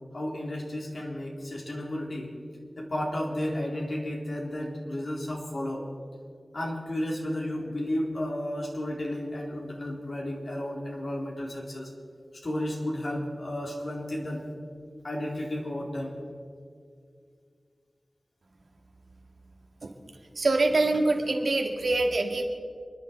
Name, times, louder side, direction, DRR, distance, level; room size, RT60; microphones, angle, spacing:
voice 1, 0.1-2.3 2.8-5.9 6.5-11.9 12.4-14.4 15.0-16.1, left 1 dB, 70° left, -2 dB, 3.6 m, -33 dB
voice 2, 20.4-22.5, right 2 dB, 85° right, 2 dB, 1.9 m, -25 dB
29.0 x 10.5 x 4.5 m, 2.2 s
wide cardioid pair, 55°, 0 cm